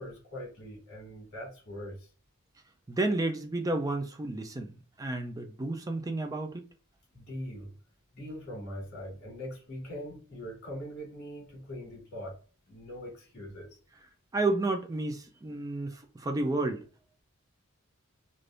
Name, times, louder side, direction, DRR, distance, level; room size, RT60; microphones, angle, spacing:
voice 1, 0.0-2.1 7.1-7.7 8.1-12.4 12.7-13.7, equal, 50° left, 1.7 m, -42 dB
voice 2, 2.9-6.7 14.3-16.8, right 2 dB, 15° right, 0.3 m, -31 dB
3.4 x 2.5 x 2.5 m
head